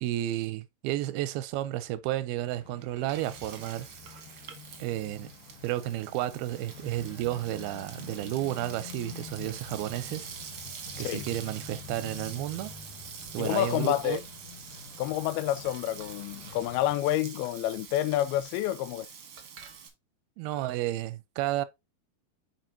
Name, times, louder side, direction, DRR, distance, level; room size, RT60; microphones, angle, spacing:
voice 1, 0.0-3.9 4.8-5.3 5.6-10.3 11.0-12.7 13.3-14.2 20.4-21.7, right 14 dB, 90° right, 2.5 m, -32 dB
sound 1, 2.3-17.0, left 7 dB, 65° left, 2.4 m, -48 dB
Frying (food), 2.6-19.9, right 7 dB, 60° right, 1.5 m, -46 dB
voice 2, 13.4-14.2 15.0-19.1, left 13 dB, 85° left, 2.5 m, -28 dB
9.1 x 4.7 x 2.7 m
omnidirectional pair, 4.3 m